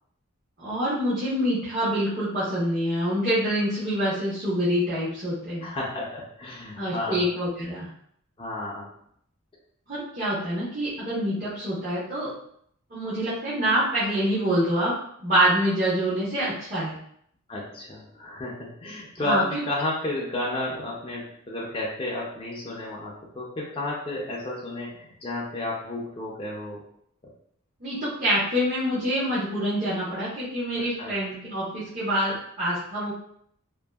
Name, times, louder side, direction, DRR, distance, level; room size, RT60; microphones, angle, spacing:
voice 1, 0.6-5.7 6.8-7.9 9.9-12.3 12.9-14.9 15.2-17.0 19.2-19.4 27.8-33.2, equal, 40° right, -11 dB, 0.9 m, -26 dB
voice 2, 5.6-7.3 8.4-8.9 17.5-26.8 31.0-31.1, left 2 dB, 25° left, -4 dB, 0.4 m, -32 dB
2.6 x 2.5 x 2.3 m, 0.68 s
head